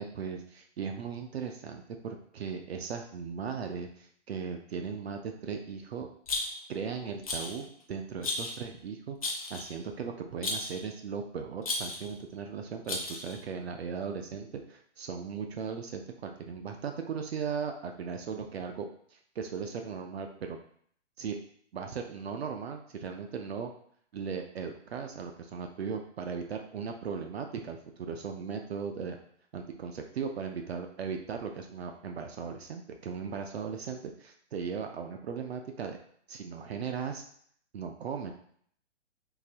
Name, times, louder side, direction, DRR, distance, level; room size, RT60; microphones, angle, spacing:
voice 1, 0.0-6.1 6.7-20.6 21.2-21.4 21.7-23.7 24.1-29.2 29.5-36.0 36.3-37.2 37.7-38.3, right 6 dB, 60° right, 4 dB, 0.4 m, -37 dB
Rattle, 6.3-6.8 7.2-7.6 8.2-8.6 9.2-9.7 10.4-10.8 11.6-12.1 12.9-13.4, left 2 dB, 30° left, 0.5 m, -34 dB
3.8 x 2.6 x 2.8 m, 0.62 s
hypercardioid pair, 175°, 36 cm